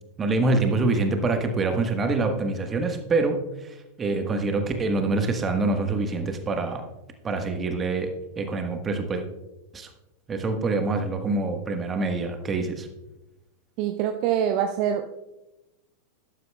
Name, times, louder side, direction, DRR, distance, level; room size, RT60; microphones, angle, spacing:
voice 1, 0.2-6.8 7.2-8.1 8.4-9.2 9.7-9.9 10.3-12.9, right 3 dB, 20° right, 5 dB, 1.3 m, -25 dB
voice 2, 13.8-15.1, right 9 dB, 45° right, 6 dB, 0.6 m, -24 dB
12.5 x 11.0 x 2.3 m, 0.97 s
figure-of-eight pair, 90°, 0 cm